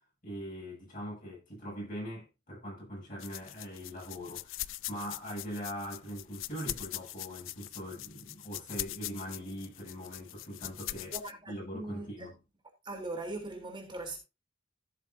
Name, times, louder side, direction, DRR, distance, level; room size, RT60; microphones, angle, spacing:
voice 1, 0.2-4.5 4.9-11.2 11.5-12.3, equal, 45° left, 7.6 m, -41 dB
sound 1, 3.2-11.3, left 15 dB, 75° left, 0.5 m, -42 dB
voice 2, 11.1-12.3 12.8-14.2, right 2 dB, 25° right, 3.4 m, -40 dB
15.5 x 7.2 x 2.7 m
head